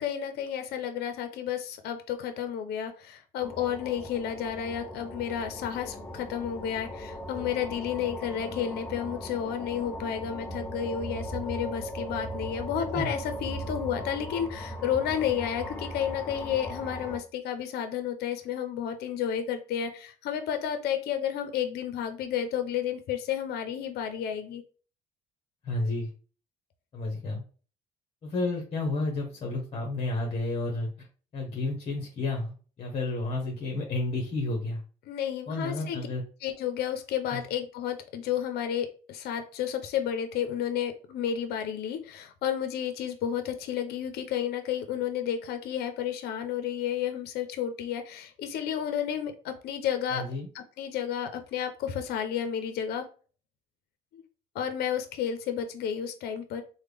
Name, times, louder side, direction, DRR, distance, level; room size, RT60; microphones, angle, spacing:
voice 1, 0.0-24.6 35.1-36.1 36.4-50.2 50.5-53.1 54.1-54.2 54.5-56.6, left 9 dB, 70° left, 8 dB, 0.5 m, -31 dB
sound 1, 3.4-17.2, equal, 10° left, 0.6 m, -38 dB
voice 2, 25.6-26.1 26.9-27.4 28.2-31.1 31.3-34.8 35.5-36.2 37.3-37.4 50.1-50.5, left 2 dB, 35° left, 0 dB, 0.9 m, -31 dB
3.2 x 2.1 x 3.4 m, 0.39 s
cardioid pair, 110°, 17 cm